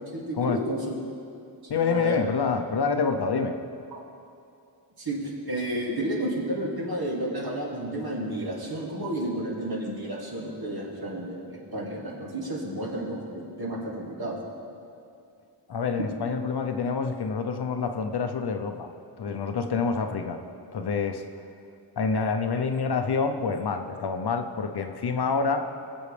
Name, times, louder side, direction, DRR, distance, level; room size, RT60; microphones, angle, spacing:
voice 1, 0.1-0.8 1.7-2.2 3.9-4.0 5.0-14.4, right 1 dB, 55° right, -3 dB, 2.3 m, -31 dB
voice 2, 1.7-3.6 15.7-18.9 19.2-20.4 20.7-21.2 22.0-25.6, left 5 dB, 60° left, 6 dB, 0.8 m, -27 dB
20.0 x 8.0 x 3.4 m, 2.6 s
wide cardioid pair, 100°, 44 cm